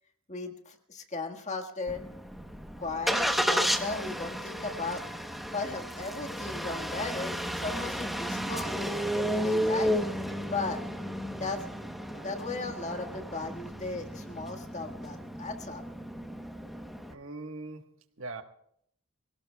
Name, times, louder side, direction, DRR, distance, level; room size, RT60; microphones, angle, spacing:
voice 1, 0.3-2.0 2.8-5.0 5.5-10.0 10.5-10.8 11.3-11.7 12.1-15.8, left 3 dB, 35° left, 5 dB, 1.6 m, -36 dB
Engine starting, 1.9-17.1, equal, ahead, 0.9 m, -33 dB
voice 2, 17.1-18.4, right 3 dB, 65° right, 7 dB, 1.3 m, -42 dB
25.5 x 17.5 x 2.3 m, 0.68 s
head